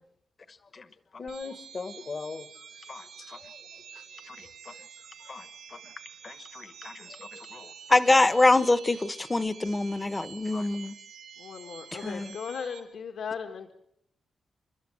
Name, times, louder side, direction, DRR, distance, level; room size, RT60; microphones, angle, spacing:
voice 1, 0.4-8.0 10.5-10.7, left 4 dB, 35° left, 1.0 m, -43 dB
sound 1, 1.3-12.8, right 7 dB, 80° right, 6.0 m, -48 dB
voice 2, 7.9-10.9 11.9-12.3, left 2 dB, 15° left, 0.8 m, -23 dB
voice 3, 11.4-13.7, left 6 dB, 75° left, 1.7 m, -37 dB
29.5 x 13.0 x 8.0 m
wide cardioid pair, 160°, 0 cm